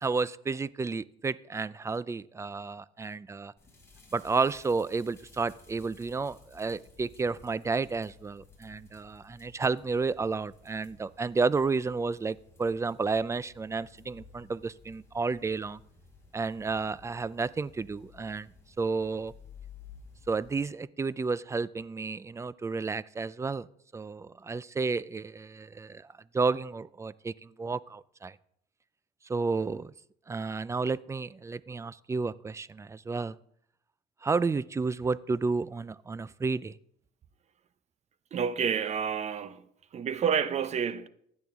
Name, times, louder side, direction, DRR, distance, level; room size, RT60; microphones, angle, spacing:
voice 1, 0.0-3.5 4.1-15.8 16.3-18.5 18.8-19.3 20.3-23.7 23.9-26.1 26.3-28.4 29.3-29.9 30.3-33.4 34.2-36.8, right 4 dB, 15° right, 0.4 m, -31 dB
sound 1, 3.6-20.6, left 5 dB, 15° left, 6.0 m, -56 dB
voice 2, 38.3-39.6 39.9-41.1, right 7 dB, 40° right, 0.7 m, -29 dB
16.0 x 10.5 x 3.6 m
cardioid pair, 110°, 17 cm